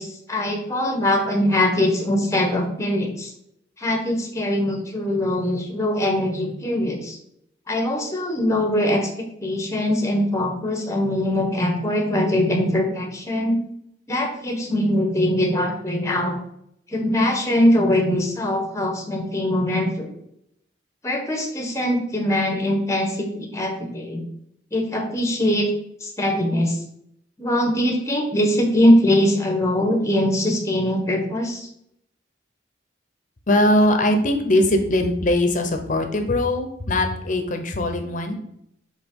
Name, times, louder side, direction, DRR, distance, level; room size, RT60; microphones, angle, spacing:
voice 1, 0.0-3.3 3.8-7.2 7.7-9.1 9.4-13.6 14.1-16.4 16.9-20.1 21.0-24.3 24.7-25.7 26.0-26.8 27.4-31.7, left 1 dB, 15° left, 3 dB, 1.2 m, -22 dB
voice 2, 33.5-38.4, left 1 dB, 45° left, 6 dB, 0.9 m, -21 dB
5.1 x 3.9 x 5.4 m, 0.74 s
head